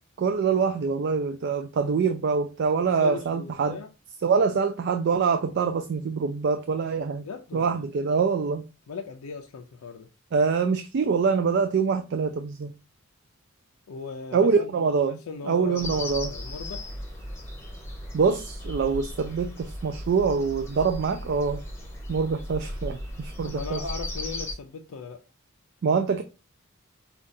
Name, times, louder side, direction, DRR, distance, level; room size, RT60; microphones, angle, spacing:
voice 1, 0.2-3.8 4.2-7.2 7.5-8.7 10.3-12.7 14.3-15.2 15.5-16.3 18.1-21.6 22.1-23.8 25.8-26.2, right 5 dB, 50° right, 0.3 m, -25 dB
voice 2, 2.9-3.9 7.2-7.9 8.9-10.1 13.9-14.9 15.3-16.9 23.5-25.2, left 5 dB, 90° left, 0.4 m, -38 dB
sound 1, 15.8-24.5, left 1 dB, 10° left, 0.9 m, -36 dB
5.0 x 2.3 x 2.6 m
head